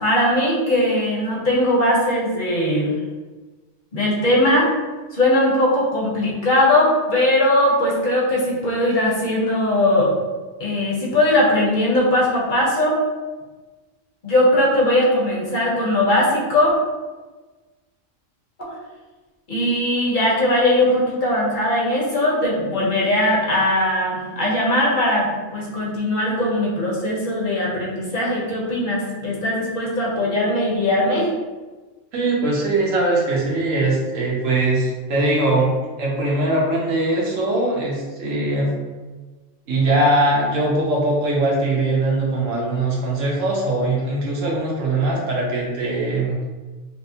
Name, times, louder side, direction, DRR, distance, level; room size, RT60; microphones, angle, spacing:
voice 1, 0.0-2.9 3.9-4.7 5.1-10.1 10.6-13.0 14.2-16.7 18.6-18.7 19.5-31.3, left 1 dB, 45° left, -4 dB, 0.9 m, -19 dB
voice 2, 32.1-38.7 39.7-46.4, right 2 dB, 90° right, -3 dB, 1.3 m, -21 dB
4.6 x 2.1 x 2.7 m, 1.3 s
omnidirectional pair, 1.3 m